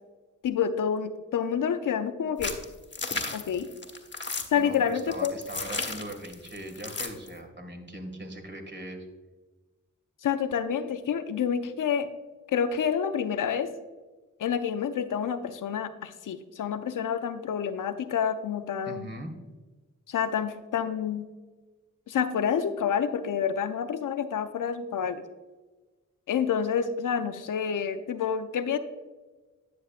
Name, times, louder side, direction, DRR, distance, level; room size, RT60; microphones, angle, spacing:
voice 1, 0.4-2.5 3.3-3.7 4.5-5.3 10.2-12.1 12.5-13.7 14.4-19.1 20.1-21.3 22.1-25.2 26.3-28.8, left 7 dB, 75° left, 10 dB, 0.6 m, -28 dB
sound 1, 2.4-7.3, left 3 dB, 35° left, 1.3 m, -34 dB
voice 2, 4.5-9.1 18.8-19.3, right 1 dB, 35° right, 3 dB, 2.0 m, -40 dB
10.0 x 6.9 x 2.5 m, 1.3 s
cardioid pair, 40°, 31 cm